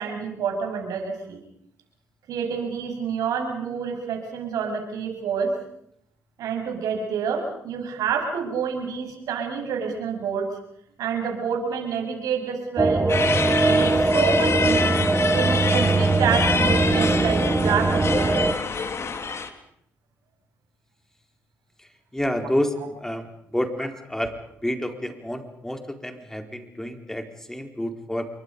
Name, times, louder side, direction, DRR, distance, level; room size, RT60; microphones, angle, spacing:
voice 1, 0.0-1.4 2.3-5.5 6.4-10.4 11.0-13.0 13.6-14.9 15.3-18.5, right 6 dB, 70° right, 3 dB, 6.9 m, -28 dB
sound 1, 12.8-18.5, right 3 dB, 20° right, 1.5 m, -21 dB
sound 2, 13.1-19.5, left 5 dB, 45° left, 2.7 m, -27 dB
voice 2, 22.1-24.3 24.6-28.3, left 1 dB, 5° left, 5 dB, 4.3 m, -29 dB
28.0 x 23.5 x 5.4 m, 0.72 s
hypercardioid pair, 55°, 6 cm